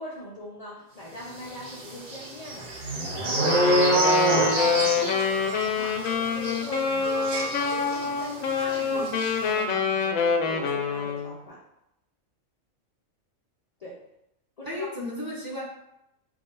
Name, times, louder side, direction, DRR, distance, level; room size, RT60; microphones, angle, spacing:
voice 1, 0.0-9.1 9.4-11.6 13.8-14.0 14.6-14.9, left 1 dB, 40° left, -5 dB, 0.5 m, -41 dB
sound 1, 1.6-8.3 8.6-8.8 9.1-9.3, right 1 dB, 50° right, 0.9 m, -26 dB
Wind instrument woodwind instrument, 3.4-11.4, left 5 dB, 80° left, 1.0 m, -26 dB
voice 2, 14.6-15.6, left 1 dB, 20° right, -5 dB, 0.8 m, -34 dB
4.2 x 2.3 x 4.4 m, 0.84 s
omnidirectional pair, 1.4 m